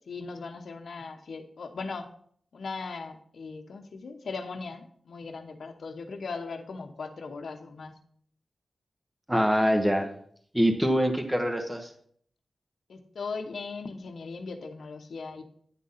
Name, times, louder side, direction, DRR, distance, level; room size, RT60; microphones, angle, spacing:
voice 1, 0.1-2.1 2.5-7.9 12.9-15.5, left 4 dB, 85° left, 4 dB, 0.9 m, -38 dB
voice 2, 9.3-10.1 10.5-11.9, equal, 10° right, 5 dB, 1.1 m, -24 dB
10.0 x 3.8 x 5.6 m, 0.62 s
cardioid pair, 55°, 0 cm